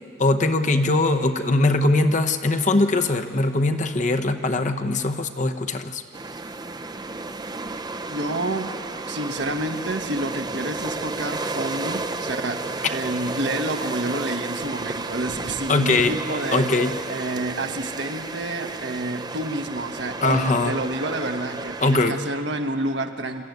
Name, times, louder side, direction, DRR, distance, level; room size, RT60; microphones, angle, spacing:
voice 1, 0.2-6.0 15.7-16.2 16.5-16.9 20.2-20.8 21.8-22.1, left 2 dB, 40° left, 7 dB, 0.9 m, -21 dB
sound 1, 6.1-22.1, right 3 dB, 20° right, 0.6 m, -32 dB
voice 2, 8.1-8.7 9.1-23.4, right 2 dB, 70° right, 5 dB, 1.2 m, -29 dB
26.5 x 13.0 x 9.4 m, 2.6 s
head